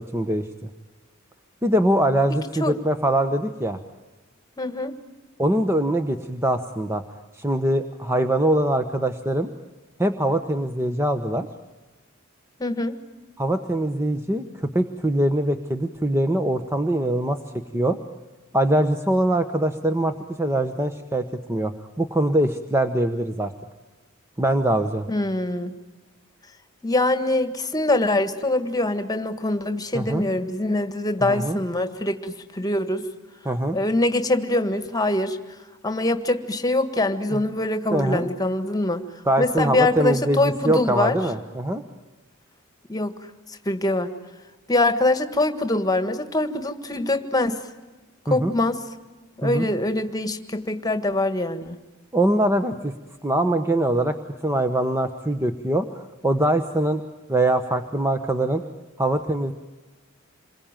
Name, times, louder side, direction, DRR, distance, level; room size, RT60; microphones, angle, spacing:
voice 1, 0.1-0.7 1.6-3.8 5.4-7.0 7.3-9.5 10.0-11.5 13.4-17.4 17.7-18.0 18.5-21.7 22.0-23.5 24.4-25.1 29.9-30.2 31.2-31.6 33.4-33.8 37.3-37.4 37.9-38.3 39.2-41.8 48.3-48.5 49.4-49.7 52.1-52.9 53.2-54.2 54.4-57.0 57.3-58.6 59.0-59.5, right 1 dB, 15° right, 7 dB, 1.1 m, -23 dB
voice 2, 4.6-4.9 12.6-13.0 25.1-25.7 26.8-33.1 33.7-35.4 35.8-39.0 39.4-41.2 42.9-43.2 43.7-44.1 44.7-47.6 48.3-48.8 49.4-51.8, left 2 dB, 20° left, 9 dB, 1.7 m, -23 dB
27.5 x 22.5 x 9.1 m, 1.2 s
head